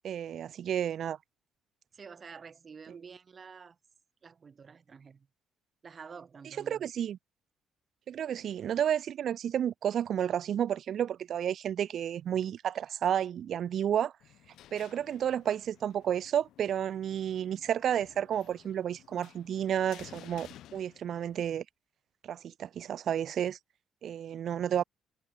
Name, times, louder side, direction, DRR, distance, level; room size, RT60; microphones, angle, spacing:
voice 1, 0.0-1.2 6.7-7.2 8.1-14.1 14.7-21.6 22.2-23.6 24.0-24.8, right 9 dB, 55° right, 0.3 m, -31 dB
voice 2, 1.9-3.8 4.2-5.3 5.8-6.9, right 5 dB, 35° right, 1.6 m, -49 dB
sound 1, 14.2-21.5, left 13 dB, 70° left, 0.6 m, -55 dB
cardioid pair, 105°, 0 cm